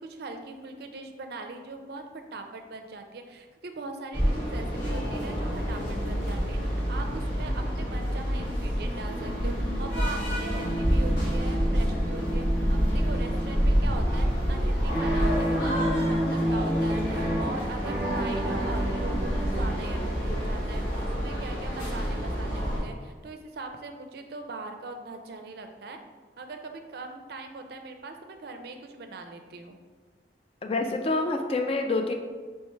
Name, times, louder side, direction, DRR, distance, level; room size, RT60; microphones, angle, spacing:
voice 1, 0.0-26.0 26.4-29.8, right 3 dB, 60° right, 6 dB, 0.4 m, -41 dB
sound 1, 4.1-22.8, equal, 75° left, 1.4 m, -28 dB
sound 2, 9.0-19.8, equal, 10° right, 0.9 m, -31 dB
voice 2, 30.6-32.1, left 2 dB, 35° left, 4 dB, 0.3 m, -27 dB
3.2 x 3.1 x 4.4 m, 1.4 s
head